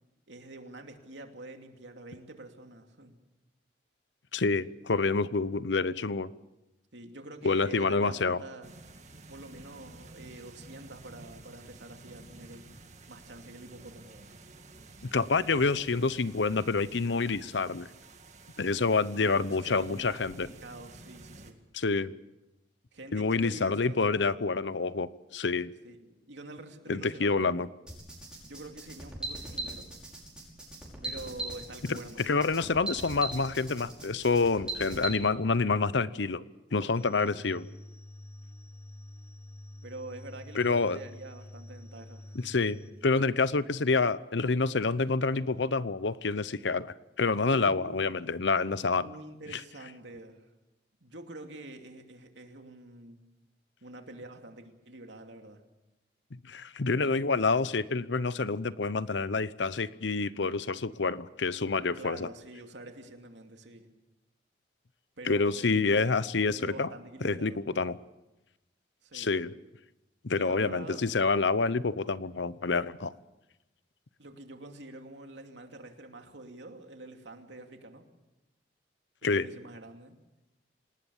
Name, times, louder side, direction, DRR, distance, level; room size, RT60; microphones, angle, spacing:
voice 1, 0.3-3.2 6.9-8.7 9.3-12.6 13.1-14.2 19.2-21.6 22.9-24.5 25.8-27.5 28.4-29.9 31.0-32.2 37.2-37.4 39.8-42.4 47.5-48.0 48.9-50.5 51.0-53.2 53.8-55.6 61.9-63.9 65.2-66.0 66.5-67.6 69.0-69.3 70.3-71.1 74.2-78.0 79.2-80.1, right 2 dB, 80° right, 4 dB, 2.7 m, -46 dB
voice 2, 4.3-6.3 7.4-8.4 15.1-17.9 18.6-20.5 21.7-22.1 23.1-25.7 26.9-27.7 31.8-36.4 36.7-37.6 40.5-41.0 42.3-42.8 43.0-49.1 49.5-49.6 56.4-62.3 65.2-66.9 67.2-68.0 69.1-69.5 70.2-73.1 79.2-79.5, left 4 dB, 80° left, 17 dB, 0.8 m, -28 dB
sound 1, 8.6-21.5, right 2 dB, 40° right, 2.0 m, -51 dB
sound 2, 27.9-35.1, right 2 dB, 5° right, 5.7 m, -39 dB
sound 3, 36.9-42.9, left 1 dB, 15° left, 2.4 m, -47 dB
27.5 x 19.0 x 7.2 m, 0.99 s
head